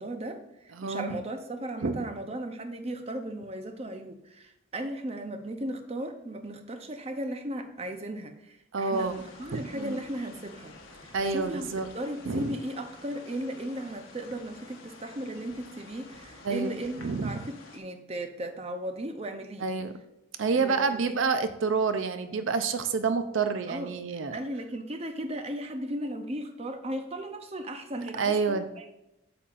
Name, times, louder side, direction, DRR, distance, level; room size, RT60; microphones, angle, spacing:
voice 1, 0.0-11.7 11.9-19.7 20.5-21.2 23.7-23.9 24.3-29.0, right 1 dB, 30° right, 6 dB, 0.7 m, -36 dB
voice 2, 0.8-1.2 1.8-2.0 8.7-9.2 9.5-10.0 11.1-11.9 12.3-12.6 16.4-16.7 17.0-17.4 19.6-19.9 20.4-24.4 28.2-28.7, right 4 dB, 80° right, 9 dB, 0.5 m, -28 dB
sound 1, 8.9-17.8, left 3 dB, 90° left, 1.1 m, -50 dB
8.5 x 7.0 x 2.5 m, 0.87 s
head